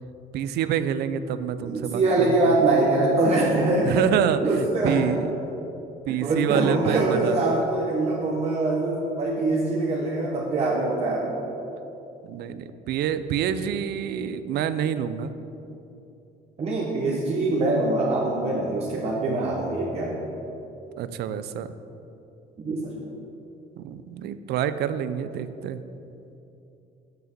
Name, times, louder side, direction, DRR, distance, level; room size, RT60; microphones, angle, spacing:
voice 1, 0.3-2.0 2.3-2.6 3.9-5.3 6.1-7.6 12.2-15.3 21.0-21.7 23.8-25.8, right 9 dB, 75° right, 12 dB, 0.5 m, -27 dB
voice 2, 1.6-4.0 4.4-5.0 6.1-11.3 16.6-20.2 22.6-22.9, right 2 dB, 40° right, -4 dB, 1.2 m, -23 dB
6.8 x 6.2 x 6.7 m, 2.9 s
cardioid pair, 110°, 17 cm